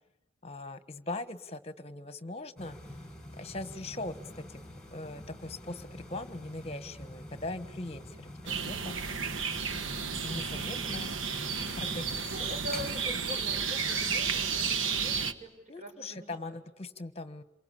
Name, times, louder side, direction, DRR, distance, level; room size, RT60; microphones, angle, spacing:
voice 1, 0.4-2.8 3.4-4.2 4.5-4.6 4.9-9.0 9.7-11.1 11.8-12.2 15.7-17.4, left 2 dB, 30° left, 11 dB, 1.4 m, -40 dB
sound 1, 2.6-12.9, left 1 dB, 5° left, 5.9 m, -46 dB
sound 2, 8.5-15.3, right 5 dB, 80° right, 1.4 m, -32 dB
voice 2, 12.2-16.5, left 1 dB, 40° right, 3 dB, 6.8 m, -43 dB
28.0 x 23.5 x 8.6 m, 0.89 s
head